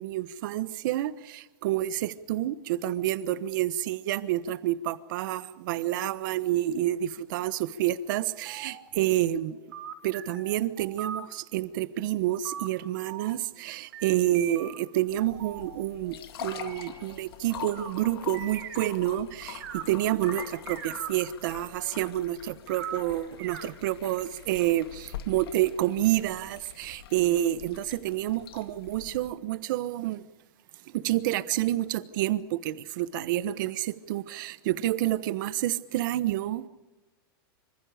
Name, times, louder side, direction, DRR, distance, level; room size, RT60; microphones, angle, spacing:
voice 1, 0.0-9.6 10.0-30.2 30.9-36.6, right 14 dB, 55° right, 1.2 m, -29 dB
sound 1, 8.2-8.9 9.3-11.2 12.4-12.7 13.1-13.7 13.9-19.2 19.5-19.8 20.2-22.1 22.7-24.0, right 9 dB, 70° right, 5.9 m, -42 dB
sound 2, 15.1-29.3, left 10 dB, 75° left, 2.2 m, -44 dB
26.5 x 25.5 x 5.1 m
supercardioid pair, 155°, 13 cm